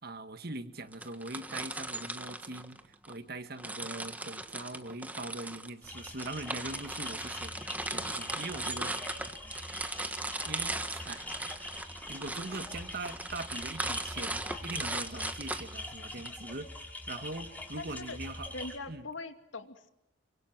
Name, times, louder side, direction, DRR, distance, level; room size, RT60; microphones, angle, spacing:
voice 1, 0.0-7.6 7.9-9.0 10.4-11.2 12.1-18.5 18.9-19.1, right 2 dB, 55° right, 9 dB, 1.9 m, -42 dB
sound 1, 0.9-3.2 3.6-16.3, right 2 dB, 10° right, 1.5 m, -38 dB
sound 2, 5.8-18.8, left 1 dB, 10° left, 5.1 m, -44 dB
voice 2, 17.8-18.2 18.5-19.9, left 3 dB, 80° left, 7 dB, 2.6 m, -42 dB
29.5 x 24.5 x 7.5 m, 0.87 s
head